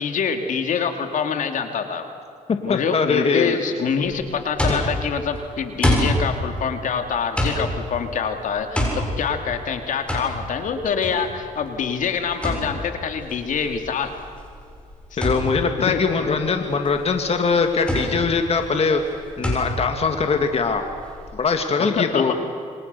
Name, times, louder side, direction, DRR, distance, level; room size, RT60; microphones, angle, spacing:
voice 1, 0.0-2.0 2.6-14.1 15.8-16.0 21.8-22.3, left 6 dB, 65° left, 6 dB, 2.5 m, -25 dB
voice 2, 2.7-3.6 4.7-4.9 15.2-19.0 19.4-20.8 21.3-22.3, left 5 dB, 45° left, 5 dB, 2.2 m, -21 dB
sound 1, 4.0-21.3, equal, 10° left, 7.3 m, -28 dB
28.0 x 25.0 x 6.9 m, 2.3 s
cardioid pair, 85°, 14 cm